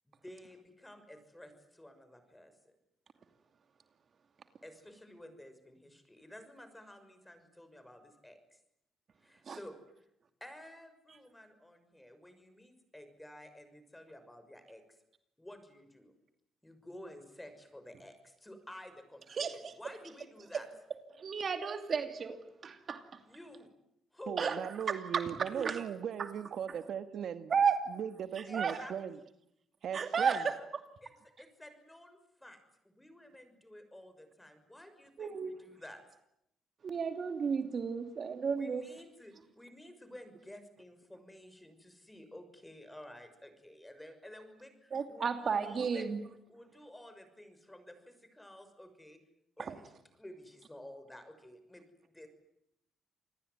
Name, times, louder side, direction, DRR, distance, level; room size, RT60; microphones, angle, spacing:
voice 1, 0.1-2.5 4.6-8.6 9.2-10.0 10.4-14.8 15.4-16.1 16.6-20.7 23.3-23.7 24.1-24.4 28.5-28.9 30.2-30.7 31.0-31.1 31.4-32.6 32.8-36.0 38.5-46.1 46.5-49.2 49.6-49.9 50.2-51.8 52.1-52.3, left 1 dB, 10° left, 6.2 m, -52 dB
voice 2, 19.3-19.7 21.2-23.0 24.4-24.6 24.9-25.8 26.2-26.3 27.5-27.8 28.4-28.8 29.9-30.5 35.2-35.6 36.8-38.9 44.9-46.2 49.6-49.8, right 6 dB, 50° right, 2.6 m, -33 dB
voice 3, 24.3-27.5 27.9-29.2 29.8-30.4, right 8 dB, 65° right, 1.5 m, -38 dB
28.0 x 20.5 x 9.6 m
cardioid pair, 90°, 0 cm